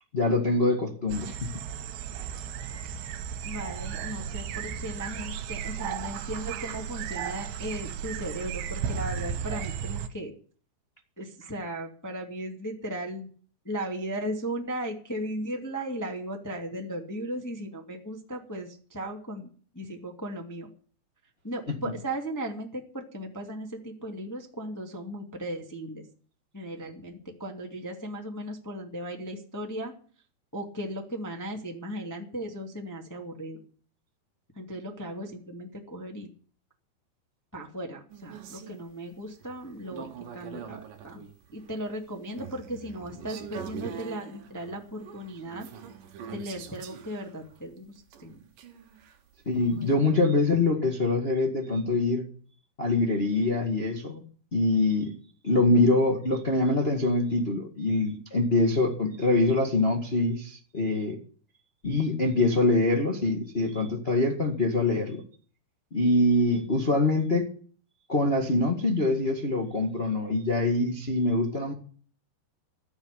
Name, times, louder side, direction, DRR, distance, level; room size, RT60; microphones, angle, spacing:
voice 1, 0.1-1.3 49.4-52.2 52.8-54.2 54.5-55.1 55.4-61.2 61.8-65.2 65.9-67.5 68.1-71.7, left 2 dB, 80° left, 2 dB, 0.5 m, -24 dB
sound 1, 1.1-10.1, right 8 dB, 80° right, 3.1 m, -35 dB
voice 2, 3.4-10.3 11.2-13.3 13.6-19.5 19.7-20.7 21.4-26.1 26.5-29.9 30.5-33.6 34.5-36.3 37.5-41.2 41.5-45.7 46.3-48.4, right 1 dB, 10° left, 1 dB, 1.0 m, -36 dB
sound 2, 38.1-50.0, right 7 dB, 60° right, 2.7 m, -44 dB
14.0 x 7.2 x 10.0 m, 0.43 s
omnidirectional pair, 5.0 m